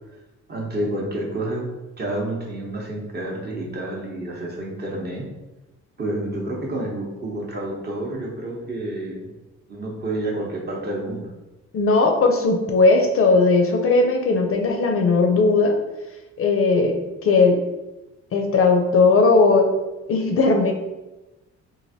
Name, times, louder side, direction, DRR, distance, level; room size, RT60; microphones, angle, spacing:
voice 1, 0.5-1.7 2.0-5.3 6.0-9.3 9.7-11.3, right 1 dB, 35° right, -2 dB, 0.8 m, -29 dB
voice 2, 11.7-15.7 16.4-17.6 18.3-19.7 20.1-20.7, left 3 dB, 45° left, 3 dB, 0.5 m, -18 dB
3.1 x 2.4 x 2.7 m, 1.0 s
cardioid pair, 90°, 30 cm